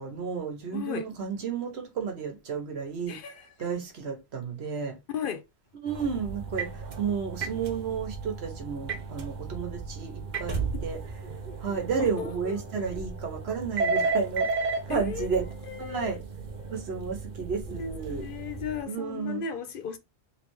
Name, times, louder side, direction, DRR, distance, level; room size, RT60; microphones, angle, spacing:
voice 1, 0.0-4.9 5.8-11.0 11.6-15.5 15.8-16.2 16.7-18.3 18.8-19.4, right 6 dB, 80° right, 1.2 m, -32 dB
voice 2, 0.7-1.1 3.1-3.5 5.1-5.4 10.5-10.8 12.0-12.6 14.9-16.2 17.7-20.0, left 7 dB, 60° left, 0.7 m, -36 dB
sound 1, 5.9-18.8, right 4 dB, 50° right, 0.8 m, -34 dB
3.4 x 3.3 x 3.0 m
omnidirectional pair, 1.1 m